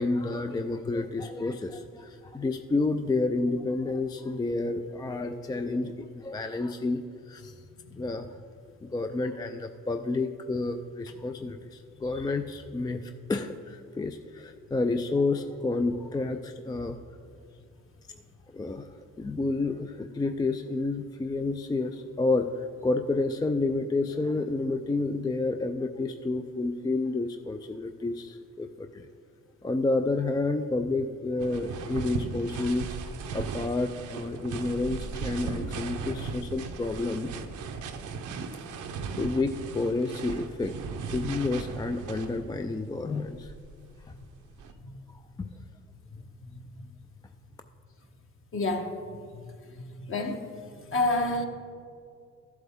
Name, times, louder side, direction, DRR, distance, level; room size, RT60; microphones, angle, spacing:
voice 1, 0.0-7.5 8.0-8.4 8.8-17.0 18.1-18.2 18.5-29.1 29.6-37.3 39.2-40.7 41.1-43.5 45.1-45.5, left 3 dB, 15° left, 6 dB, 0.3 m, -30 dB
sound 1, 31.4-42.7 43.2-44.7, right 5 dB, 80° right, 0.8 m, -37 dB
voice 2, 48.5-48.9 49.7-50.5 50.9-51.4, left 2 dB, 45° left, 4 dB, 1.2 m, -28 dB
13.5 x 7.9 x 3.6 m, 2.3 s
cardioid pair, 90°, 30 cm